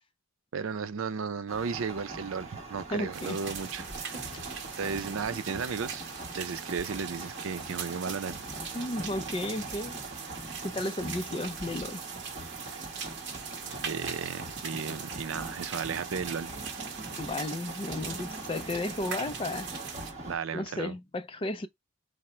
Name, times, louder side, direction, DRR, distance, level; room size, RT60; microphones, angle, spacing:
voice 1, 0.5-4.3 4.8-6.1 6.3-8.4 12.7-12.8 13.8-16.6 20.3-21.0, right 5 dB, 80° right, 0.5 m, -34 dB
sound 1, 1.5-20.4, right 2 dB, 35° right, 1.3 m, -42 dB
voice 2, 2.9-3.4 4.1-4.2 8.7-10.0 10.6-12.1 17.2-19.7 20.5-21.7, left 2 dB, 25° left, 0.4 m, -33 dB
sound 2, 3.1-20.1, right 6 dB, 60° right, 0.9 m, -41 dB
4.8 x 2.1 x 4.2 m
head